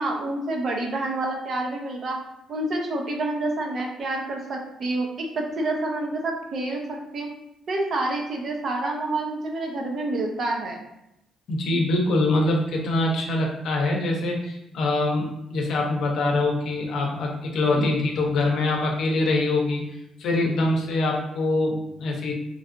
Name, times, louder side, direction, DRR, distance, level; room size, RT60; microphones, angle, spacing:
voice 1, 0.0-2.2 2.5-7.3 7.7-10.8 17.8-17.9, right 2 dB, 55° right, 1 dB, 0.6 m, -28 dB
voice 2, 11.5-19.8 20.2-22.3, left 2 dB, 75° left, 0 dB, 0.6 m, -24 dB
3.2 x 2.4 x 2.5 m, 0.86 s
cardioid pair, 90°, 0 cm